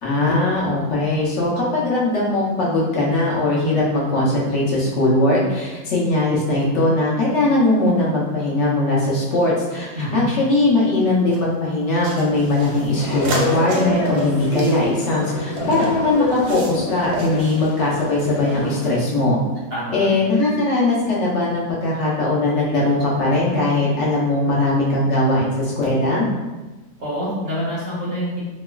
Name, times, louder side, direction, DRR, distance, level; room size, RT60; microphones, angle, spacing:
voice 1, 0.0-19.4 19.9-26.3, left 2 dB, 60° left, -5 dB, 0.7 m, -20 dB
voice 2, 9.9-10.3 19.7-20.1 27.0-28.4, equal, 60° right, -9 dB, 0.6 m, -26 dB
sound 1, 10.4-11.4 12.0-15.9 16.3-16.9 17.1-17.7, right 2 dB, 90° right, 1.3 m, -33 dB
sound 2, 12.4-19.0, left 1 dB, 85° left, 1.5 m, -27 dB
3.0 x 2.3 x 2.2 m, 1.1 s
omnidirectional pair, 2.0 m